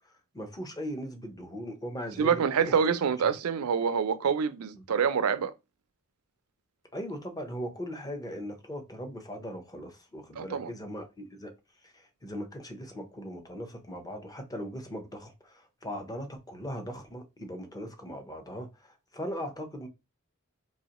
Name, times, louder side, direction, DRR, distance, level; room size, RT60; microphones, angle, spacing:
voice 1, 0.3-2.7 4.7-4.8 6.9-11.5 11.8-19.9, equal, 15° left, 0.7 m, -39 dB
voice 2, 2.2-5.5 10.4-10.7, right 6 dB, 75° right, 0.4 m, -26 dB
3.9 x 2.8 x 2.9 m
head